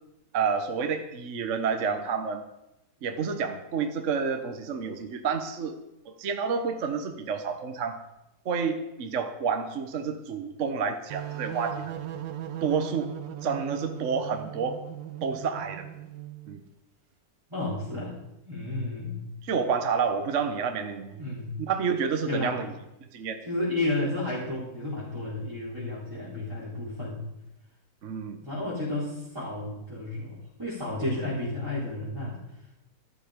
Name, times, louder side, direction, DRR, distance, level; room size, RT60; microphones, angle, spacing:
voice 1, 0.3-2.4 3.0-5.8 6.1-8.0 8.4-12.0 12.6-13.1 13.4-14.8 15.2-15.9 16.5-16.6 19.4-21.2 21.6-22.7 23.1-23.4 28.0-28.4, right 6 dB, 50° right, 7 dB, 1.2 m, -29 dB
sound 1, 11.1-16.6, right 11 dB, 80° right, 1.5 m, -38 dB
voice 2, 17.5-18.2 18.4-19.2 21.2-21.5 22.3-22.6 23.4-27.2 28.4-32.4, left 2 dB, 10° right, -9 dB, 4.3 m, -32 dB
13.0 x 12.5 x 5.2 m, 0.89 s
omnidirectional pair, 2.0 m